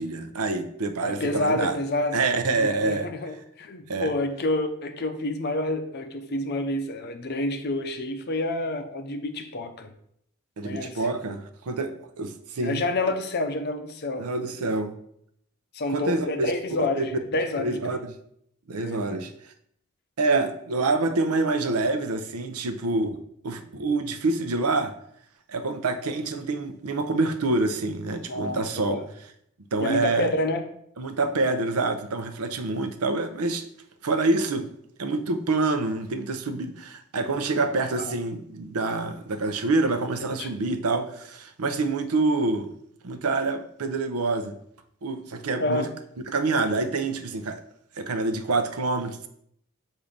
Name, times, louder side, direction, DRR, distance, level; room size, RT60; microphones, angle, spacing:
voice 1, 0.0-1.8 2.1-3.1 3.9-4.1 10.6-12.8 14.2-14.9 15.9-16.5 17.0-17.1 17.6-18.0 18.7-19.3 20.2-23.2 23.4-24.9 25.5-29.0 29.7-30.3 31.0-33.7 34.0-34.7 35.0-42.7 43.0-44.5 45.0-45.9 46.3-47.6 48.0-49.3, right 3 dB, 85° right, 8 dB, 0.6 m, -26 dB
voice 2, 1.0-9.9 10.6-11.0 12.6-14.3 15.7-18.0 18.8-19.2 28.3-29.1 29.8-30.7 38.0-38.1 40.4-40.6 45.6-45.9, left 2 dB, 45° left, 7 dB, 0.6 m, -29 dB
7.1 x 2.7 x 5.0 m, 0.71 s
head